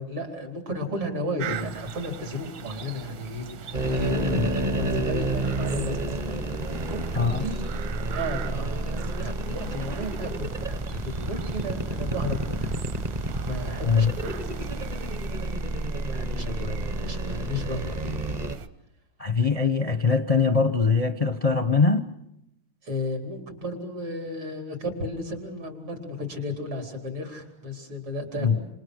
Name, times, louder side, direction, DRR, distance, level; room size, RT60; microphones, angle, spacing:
voice 1, 0.0-6.2 6.8-7.6 8.1-12.8 13.4-14.5 16.1-18.2 22.8-28.7, left 1 dB, 85° right, 5.2 m, -33 dB
sound 1, 1.4-18.7, right 7 dB, 65° right, 2.0 m, -41 dB
sound 2, 3.7-18.6, right 2 dB, 40° right, 0.6 m, -30 dB
voice 2, 7.2-7.5 13.8-14.1 19.2-22.1 28.4-28.6, left 5 dB, 45° left, 0.4 m, -22 dB
28.0 x 28.0 x 6.5 m
omnidirectional pair, 2.3 m